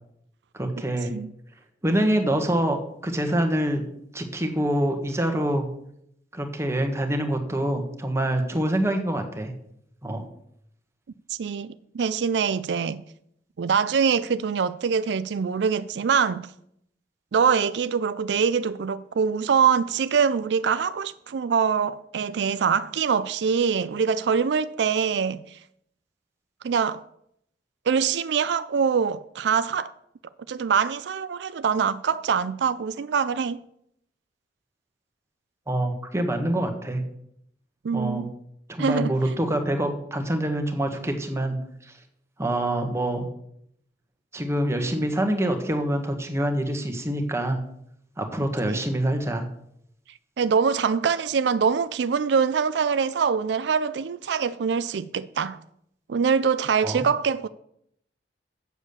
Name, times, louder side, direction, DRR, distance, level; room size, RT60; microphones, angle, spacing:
voice 1, 0.5-1.1 1.8-2.8 3.0-3.8 4.1-5.7 6.3-9.5 10.0-10.2 35.7-37.0 37.9-38.3 38.7-41.6 41.8-41.9 42.4-43.3 44.3-47.6 48.2-49.4 56.8-57.1, right 1 dB, 15° right, 1.4 m, -25 dB
voice 2, 11.3-13.0 13.6-16.5 17.3-25.6 26.6-27.0 27.9-29.9 30.5-33.6 37.8-38.3 38.8-39.2 48.7-48.8 50.4-55.6 56.1-57.5, right 6 dB, 75° right, 0.4 m, -24 dB
8.2 x 7.3 x 6.9 m
head